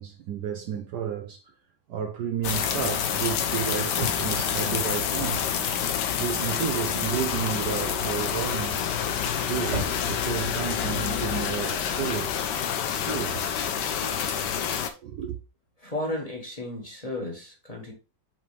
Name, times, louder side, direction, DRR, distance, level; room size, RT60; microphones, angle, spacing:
voice 1, 0.0-1.5 1.9-5.5 6.2-8.8 9.5-12.3 12.9-13.7 14.0-14.1 15.0-15.4, right 8 dB, 70° right, 1.1 m, -32 dB
sound 1, 2.4-14.9, left 8 dB, 70° left, 1.3 m, -28 dB
sound 2, 3.8-12.1, right 1 dB, 40° right, 1.7 m, -41 dB
voice 2, 15.8-17.9, left 1 dB, 20° left, 1.6 m, -33 dB
5.8 x 5.0 x 3.4 m
omnidirectional pair, 2.1 m